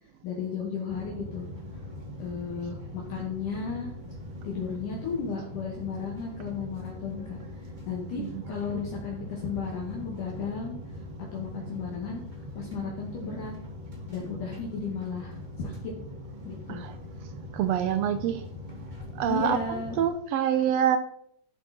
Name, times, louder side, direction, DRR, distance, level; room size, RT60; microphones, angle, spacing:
voice 1, 0.2-1.5 2.2-3.9 4.4-7.4 7.9-11.0 11.3-12.2 12.5-13.5 14.1-15.9 16.4-16.8 19.2-20.0, left 5 dB, 65° left, -3 dB, 3.6 m, -34 dB
sound 1, 0.9-20.1, left 1 dB, 15° right, 2.4 m, -41 dB
voice 2, 17.5-18.4 19.2-19.6 20.0-21.0, right 9 dB, 90° right, 10 dB, 1.4 m, -26 dB
12.0 x 11.5 x 4.4 m, 0.69 s
omnidirectional pair, 3.9 m